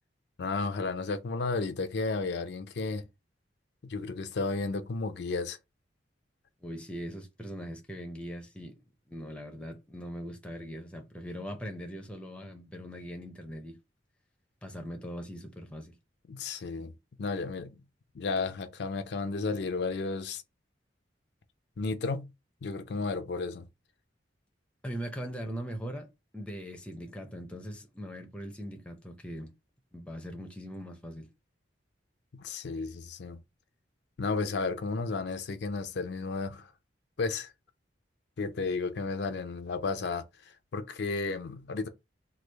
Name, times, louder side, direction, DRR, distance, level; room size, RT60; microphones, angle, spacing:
voice 1, 0.4-3.0 3.8-5.6 16.3-16.9 17.2-17.8 18.1-20.4 21.8-22.3 22.6-23.7 32.3-33.4 34.2-36.7 37.2-37.5 38.4-41.9, left 3 dB, 60° left, 0.4 m, -33 dB
voice 2, 6.6-8.8 9.1-13.8 14.6-15.9 24.8-29.5 29.9-31.3, equal, 5° left, 0.5 m, -40 dB
3.1 x 2.3 x 3.3 m
head